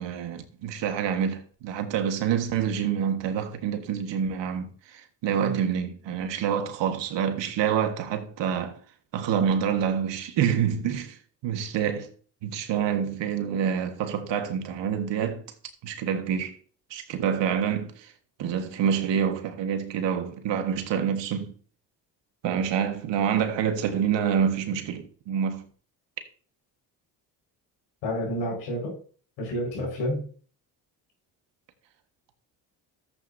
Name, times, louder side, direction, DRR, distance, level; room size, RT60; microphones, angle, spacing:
voice 1, 0.0-8.8 9.1-11.2 11.4-12.1 12.4-15.4 15.8-16.6 16.9-18.1 18.4-21.5 22.4-25.6, right 8 dB, 65° right, 1.7 m, -27 dB
voice 2, 28.0-29.0 29.4-30.2, equal, 75° left, 5.4 m, -29 dB
13.5 x 8.2 x 2.8 m
hypercardioid pair, 60°, 46 cm